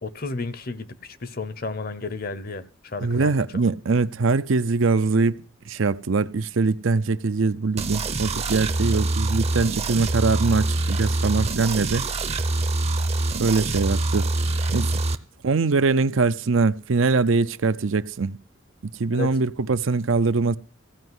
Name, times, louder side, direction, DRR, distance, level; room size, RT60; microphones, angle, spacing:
voice 1, 0.0-3.6 19.1-19.3, left 3 dB, 45° left, 0.8 m, -33 dB
voice 2, 3.0-12.1 13.4-14.3 14.7-15.0 15.4-18.4 19.0-20.6, right 4 dB, 70° right, 0.6 m, -22 dB
sound 1, 7.8-15.2, right 2 dB, 30° right, 0.7 m, -25 dB
15.5 x 5.4 x 9.6 m
head